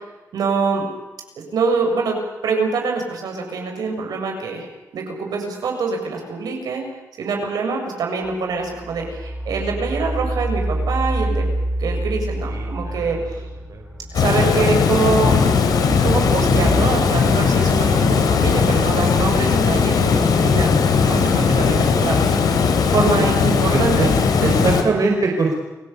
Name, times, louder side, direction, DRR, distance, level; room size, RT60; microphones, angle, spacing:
voice 1, 0.3-0.9 1.5-2.2 2.4-4.7 4.9-6.9 7.2-11.5 11.8-13.4 14.1-15.4 16.0-22.6 22.9-24.1, right 4 dB, 80° right, 2 dB, 6.9 m, -24 dB
sound 1, 8.3-8.4 8.6-16.8, right 1 dB, ahead, 6.6 m, -27 dB
voice 2, 12.5-13.1 13.7-13.9 23.7-24.1 24.4-25.5, right 3 dB, 60° right, 1 dB, 5.0 m, -22 dB
Water, 14.1-24.8, left 5 dB, 80° left, 3.6 m, -18 dB
29.5 x 17.5 x 8.5 m, 1.1 s
cardioid pair, 70°, 6 cm